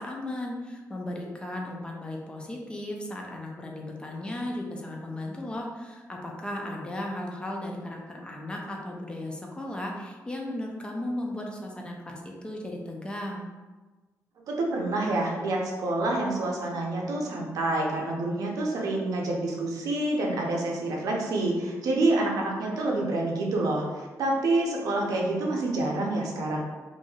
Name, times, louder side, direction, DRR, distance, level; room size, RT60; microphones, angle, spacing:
voice 1, 0.0-13.5, left 1 dB, 15° left, 0 dB, 0.4 m, -36 dB
voice 2, 14.5-26.6, right 2 dB, 75° right, -1 dB, 0.5 m, -27 dB
3.0 x 2.6 x 2.3 m, 1.3 s
cardioid pair, 120°, 6 cm